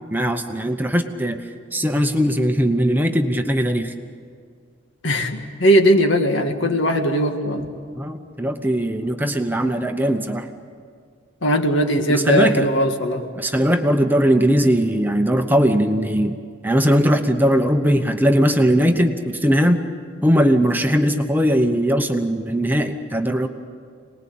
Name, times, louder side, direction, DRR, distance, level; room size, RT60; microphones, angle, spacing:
voice 1, 0.1-1.4 1.7-3.9 8.0-10.5 12.1-12.7 13.4-16.4 16.6-19.8 20.2-23.5, equal, 10° right, 5 dB, 0.9 m, -19 dB
voice 2, 5.0-7.7 11.4-13.2, equal, 65° left, 5 dB, 1.9 m, -19 dB
27.0 x 20.0 x 8.6 m, 2.1 s
head